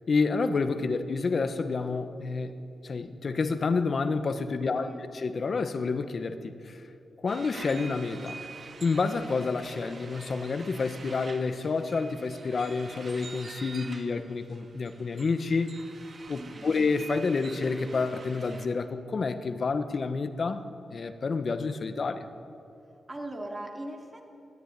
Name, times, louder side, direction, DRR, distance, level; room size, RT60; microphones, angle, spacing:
voice 1, 0.1-2.5 2.8-4.9 5.1-6.8 7.2-8.4 8.8-15.8 16.3-22.3, left 4 dB, 50° left, 9 dB, 1.2 m, -29 dB
voice 2, 4.6-5.0 16.4-16.8 23.1-24.2, right 1 dB, 20° right, 2 dB, 2.8 m, -39 dB
sound 1, 7.3-18.7, right 4 dB, 45° right, 1.9 m, -47 dB
20.5 x 13.5 x 9.7 m, 2.8 s
wide cardioid pair, 105°, 0 cm